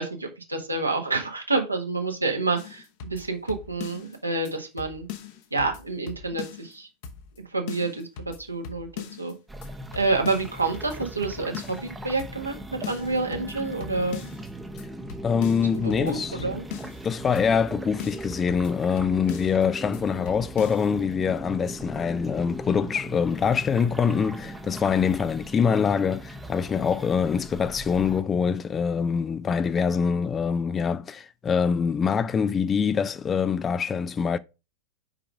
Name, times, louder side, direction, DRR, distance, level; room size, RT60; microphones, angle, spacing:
voice 1, 0.0-5.1 5.5-6.9 7.5-9.3 9.9-14.2 15.7-16.6, right 3 dB, 85° right, 1.6 m, -28 dB
sound 1, 2.6-4.2 4.5-4.6 4.8-6.7 7.0-7.4 7.7-9.3 9.6-9.7 9.9-11.9 12.2-12.6 12.8-14.5 14.8-14.9 15.1-17.1 17.4-17.7 18.0-19.7 19.9-20.0 20.3-20.8, left 8 dB, 50° left, 1.0 m, -40 dB
sound 2, 9.5-28.2, right 1 dB, 10° right, 0.8 m, -39 dB
voice 2, 15.2-16.4 17.0-34.4, left 6 dB, 20° left, 0.4 m, -24 dB
5.7 x 5.0 x 4.8 m
figure-of-eight pair, 90°, 0 cm